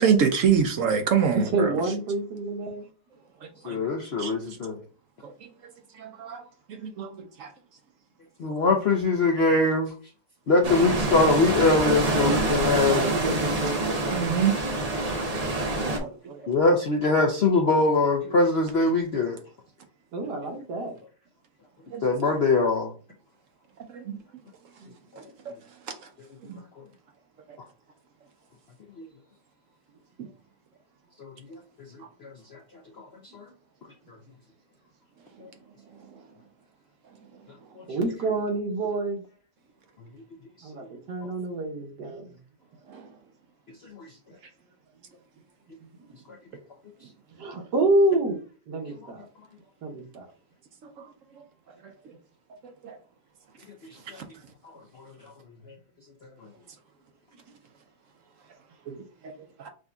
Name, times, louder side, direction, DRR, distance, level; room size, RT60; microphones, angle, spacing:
voice 1, 0.0-1.7 3.4-3.8 4.2-4.6 5.2-5.5 5.9-6.4 6.7-7.5 14.1-14.5 15.8-16.4 21.9-22.0 23.9-24.2 25.2-25.3 26.0-26.1 26.5-26.6 42.9-43.1 50.8-51.1 51.4-51.5 52.6-53.0 54.1-54.2 58.9-59.0 59.2-59.3 59.6-59.7, right 7 dB, 65° right, 0.8 m, -26 dB
voice 2, 1.3-2.9 3.8-3.9 12.9-14.4 20.1-21.0 24.8-24.9 37.9-39.2 40.6-42.4 45.8-46.1 47.4-48.4 48.7-49.2 49.8-50.3 57.5-57.6, right 2 dB, 85° right, 1.6 m, -28 dB
voice 3, 3.6-4.8 8.4-9.9 10.5-13.0 15.2-15.3 15.6-15.7 16.5-19.4 22.0-22.9 29.0-29.1 31.2-31.6 32.2-32.6 33.0-33.1 33.3-33.4 37.8-37.9 54.1-54.2 55.0-55.1, left 3 dB, 65° left, 0.6 m, -23 dB
sound 1, 10.6-16.0, right 2 dB, 40° right, 0.5 m, -26 dB
6.1 x 2.6 x 2.3 m
omnidirectional pair, 1.8 m